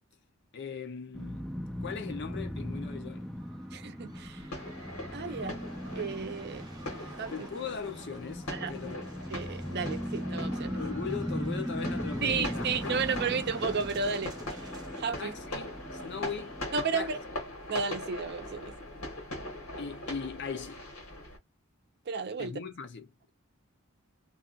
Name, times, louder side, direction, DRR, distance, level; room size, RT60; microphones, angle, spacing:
voice 1, 0.5-1.5 1.8-3.3 7.3-9.0 10.7-13.2 15.2-16.6 16.9-17.1 19.8-20.8 22.4-23.1, left 6 dB, 55° left, 0.6 m, -39 dB
sound 1, 1.1-16.6, equal, ahead, 0.4 m, -38 dB
sound 2, 3.0-20.7, right 2 dB, 20° right, 0.8 m, -54 dB
voice 2, 3.7-4.5 5.1-5.6 5.9-6.6 7.0-7.5 8.5-8.7 9.3-10.8 12.2-15.3 16.7-17.2 17.7-18.7 22.1-22.5, right 5 dB, 50° right, 0.5 m, -33 dB
sound 3, 4.1-21.4, left 1 dB, 80° left, 1.4 m, -41 dB
2.6 x 2.4 x 2.5 m
head